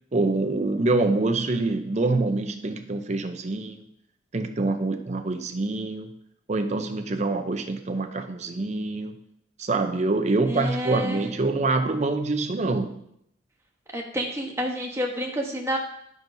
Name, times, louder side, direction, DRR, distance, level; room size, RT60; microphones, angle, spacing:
voice 1, 0.1-3.9 4.3-6.1 6.5-9.1 9.6-12.9, right 3 dB, 35° right, 6 dB, 0.6 m, -25 dB
voice 2, 10.5-11.2 13.9-15.8, equal, 15° right, 0 dB, 1.0 m, -29 dB
10.5 x 5.9 x 2.7 m, 0.74 s
head